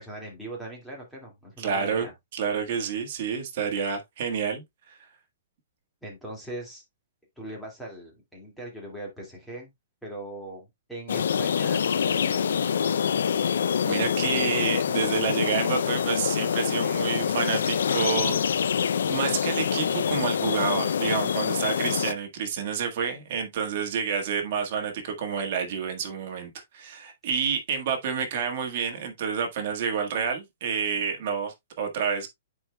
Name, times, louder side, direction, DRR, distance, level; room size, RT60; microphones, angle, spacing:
voice 1, 0.0-2.1 6.0-6.8 7.4-9.7 10.0-12.5, right 1 dB, ahead, 2.1 m, -40 dB
voice 2, 1.6-4.6 13.8-18.3 19.1-32.3, right 6 dB, 45° right, 1.5 m, -29 dB
sound 1, 11.1-22.1, left 7 dB, 85° left, 0.4 m, -25 dB
10.0 x 4.6 x 2.2 m
hypercardioid pair, 170°, 0 cm